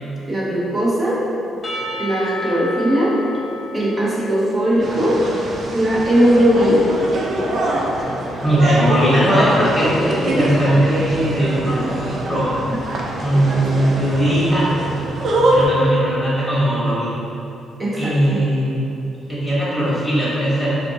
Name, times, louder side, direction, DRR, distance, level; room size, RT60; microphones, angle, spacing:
voice 1, 0.3-1.2 2.0-3.2 3.7-5.2 5.7-6.9 17.8-18.4, equal, 35° right, -6 dB, 0.8 m, -18 dB
Percussion / Church bell, 1.6-5.3, left 1 dB, 35° left, 0.6 m, -31 dB
sound 1, 4.8-15.7, right 1 dB, 55° right, 0.4 m, -24 dB
voice 2, 8.4-12.6 13.2-14.7 15.5-17.1 17.9-20.8, right 1 dB, ahead, -9 dB, 1.1 m, -19 dB
3.7 x 2.5 x 2.7 m, 2.9 s
cardioid pair, 90°, 0 cm